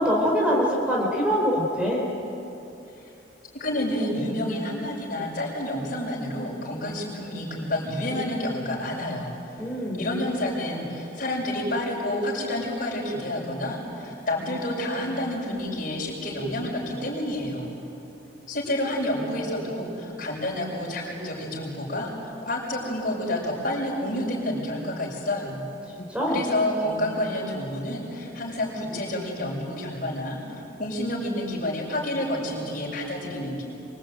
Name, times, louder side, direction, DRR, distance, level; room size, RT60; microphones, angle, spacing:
voice 1, 0.0-2.0 9.6-10.0 26.1-26.4, equal, 5° right, -3 dB, 4.0 m, -23 dB
voice 2, 3.5-17.7 18.5-25.6 26.3-33.6, left 1 dB, 45° left, -4 dB, 6.9 m, -29 dB
25.5 x 25.0 x 9.2 m, 3.0 s
head